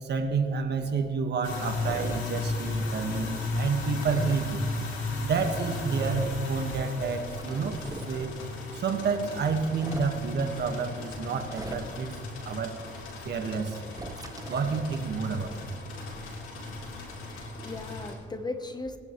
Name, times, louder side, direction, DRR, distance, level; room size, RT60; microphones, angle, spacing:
voice 1, 0.0-4.6 5.2-7.8 8.1-8.3 8.7-12.1 12.4-12.7 13.2-13.8 14.5-15.5, right 5 dB, 60° right, 5 dB, 1.7 m, -29 dB
sound 1, 1.4-18.1, left 2 dB, 85° left, 3.7 m, -35 dB
sound 2, 1.9-2.2 4.0-4.4 6.0-6.4 7.4-8.1 9.7-10.1 11.5-12.1 13.9-14.8, right 3 dB, 20° right, 1.1 m, -40 dB
voice 2, 16.8-19.0, left 3 dB, 20° left, 8 dB, 1.1 m, -38 dB
21.0 x 10.5 x 3.2 m, 2.2 s
cardioid pair, 90°, 20 cm